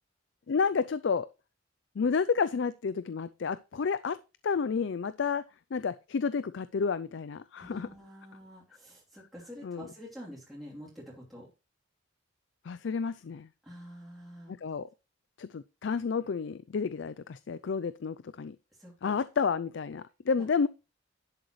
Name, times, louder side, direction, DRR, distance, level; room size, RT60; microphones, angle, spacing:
voice 1, 0.5-1.3 2.0-4.2 4.4-5.4 5.7-7.9 9.6-9.8 12.7-13.5 14.5-14.9 15.4-18.6 19.0-20.7, left 5 dB, 60° left, 0.4 m, -30 dB
voice 2, 7.6-11.5 13.6-14.5 18.7-19.2 20.4-20.5, equal, ahead, 3.0 m, -47 dB
11.0 x 7.8 x 3.1 m
head